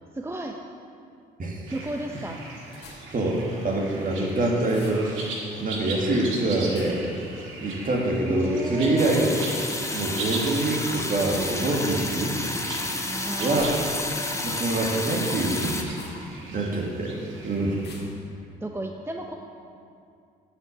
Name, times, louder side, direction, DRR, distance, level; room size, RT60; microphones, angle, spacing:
voice 1, 0.1-0.6 1.7-2.4 8.2-9.4 13.0-14.2 18.6-19.4, right 2 dB, 10° right, 2 dB, 0.8 m, -33 dB
sound 1, 1.7-18.1, right 3 dB, 75° right, 1.9 m, -39 dB
sound 2, 2.7-3.2 4.6-5.1 6.7-7.2 9.1-9.4 11.2-11.9 13.4-14.3 15.8-16.3 17.8-18.2, left 3 dB, 55° left, 2.0 m, -45 dB
voice 2, 3.1-5.3 5.6-7.0 7.6-9.2 9.9-12.3 13.4-13.7 14.4-15.9 16.5-17.1 17.4-17.8, right 2 dB, 45° right, -1 dB, 2.3 m, -25 dB
sound 3, 9.0-15.8, left 2 dB, 15° left, 1.3 m, -31 dB
9.2 x 7.1 x 7.0 m, 2.5 s
hypercardioid pair, 55°, 20 cm